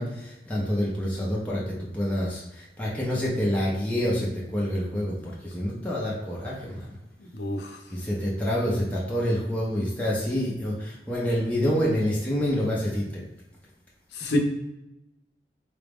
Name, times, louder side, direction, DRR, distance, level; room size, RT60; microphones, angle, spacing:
voice 1, 0.0-6.9 7.9-13.2 14.2-14.4, equal, 10° left, -5 dB, 0.6 m, -27 dB
voice 2, 7.2-7.8 14.1-14.4, left 1 dB, 75° left, 2 dB, 0.7 m, -28 dB
4.0 x 2.3 x 3.5 m, 0.91 s
head